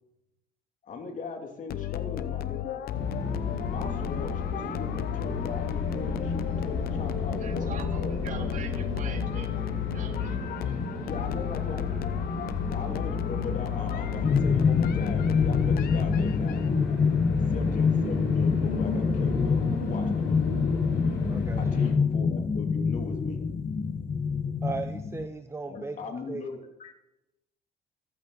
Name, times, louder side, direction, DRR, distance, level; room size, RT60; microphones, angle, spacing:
voice 1, 0.8-2.7 3.7-8.6 11.0-12.1 12.7-17.0 17.5-20.6 21.6-23.4 25.6-26.9, left 4 dB, 50° left, 3 dB, 2.5 m, -39 dB
sound 1, 1.7-16.6, left 12 dB, 65° left, 0.8 m, -33 dB
sound 2, 2.9-21.9, left 2 dB, 90° left, 6.0 m, -34 dB
voice 2, 7.4-9.5 9.9-10.8, right 6 dB, 50° right, 5 dB, 2.2 m, -43 dB
sound 3, 14.2-25.3, left 5 dB, 30° left, 1.2 m, -26 dB
voice 3, 24.6-26.0 26.3-26.5, right 4 dB, 15° right, 9 dB, 0.7 m, -36 dB
14.5 x 14.0 x 4.0 m, 0.92 s
cardioid pair, 110°, 17 cm